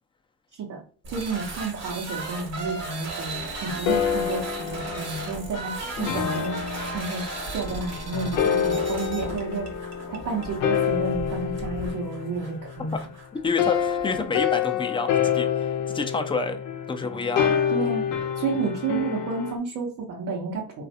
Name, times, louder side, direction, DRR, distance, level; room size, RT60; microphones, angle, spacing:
sound 1, 1.0-14.3, right 3 dB, 55° right, 1.1 m, -36 dB
voice 1, 1.1-6.6 6.9-7.2 7.5-9.7 10.1-12.9 17.7-20.9, right 4 dB, 75° right, -3 dB, 0.9 m, -31 dB
sound 2, 3.3-13.0 13.6-19.6, left 8 dB, 85° left, 0.6 m, -28 dB
voice 2, 13.4-16.6 16.9-17.6, left 4 dB, 15° left, 6 dB, 0.5 m, -28 dB
3.1 x 2.5 x 2.7 m, 0.43 s
supercardioid pair, 70°, 32 cm